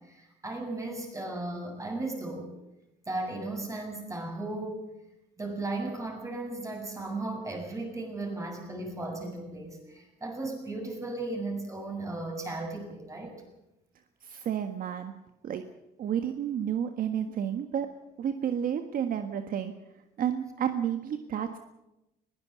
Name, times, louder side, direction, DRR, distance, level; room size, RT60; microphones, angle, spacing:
voice 1, 0.0-2.5 3.1-4.9 5.4-13.3, right 2 dB, 20° right, 3 dB, 7.2 m, -36 dB
voice 2, 14.2-15.1 15.4-15.6 16.0-17.9 18.2-19.7 20.2-21.6, right 9 dB, 55° right, 7 dB, 1.6 m, -31 dB
21.5 x 17.0 x 8.4 m, 0.92 s
cardioid pair, 110°, 17 cm